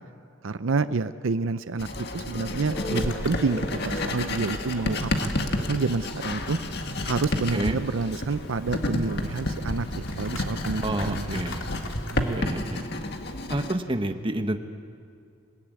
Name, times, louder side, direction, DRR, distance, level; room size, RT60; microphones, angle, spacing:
voice 1, 0.4-5.3 5.7-6.6 7.0-11.2, right 4 dB, 75° right, 13 dB, 0.6 m, -28 dB
Writing, 1.8-13.7, left 1 dB, 55° left, 1.8 m, -30 dB
sound 1, 2.7-12.4, left 2 dB, 75° left, 2.6 m, -42 dB
sound 2, 2.7-6.4, equal, 15° left, 2.2 m, -42 dB
voice 2, 10.8-11.7 12.2-12.8 13.5-14.6, right 1 dB, 25° right, 6 dB, 1.3 m, -29 dB
27.0 x 18.0 x 9.5 m, 2.4 s
head